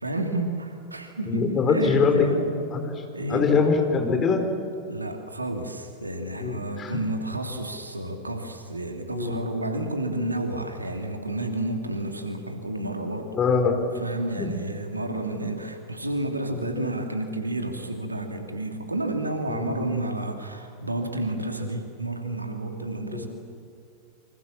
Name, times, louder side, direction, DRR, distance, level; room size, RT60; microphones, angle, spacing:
voice 1, 0.0-2.4 3.1-3.5 4.9-13.3 13.9-23.3, right 1 dB, 80° right, 5 dB, 2.9 m, -31 dB
voice 2, 1.3-3.0 3.3-4.4 6.4-7.0 9.1-9.4 13.3-13.8 14.4-14.5 16.6-16.8 19.5-19.9 23.1-23.3, left 5 dB, 25° left, 5 dB, 4.5 m, -23 dB
27.5 x 26.0 x 7.4 m, 2.4 s
figure-of-eight pair, 90°, 0 cm